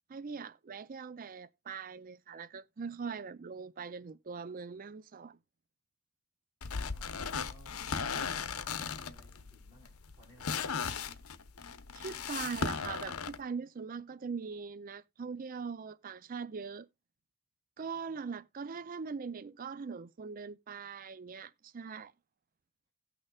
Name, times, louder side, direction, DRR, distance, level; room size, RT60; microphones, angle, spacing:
voice 1, 0.1-5.4 11.9-16.9 17.8-22.1, right 5 dB, 40° right, 0.4 m, -41 dB
sound 1, 6.6-13.4, left 5 dB, 85° left, 0.9 m, -37 dB
voice 2, 6.9-10.8, equal, 25° right, 4.5 m, -59 dB
17.5 x 6.4 x 2.3 m
head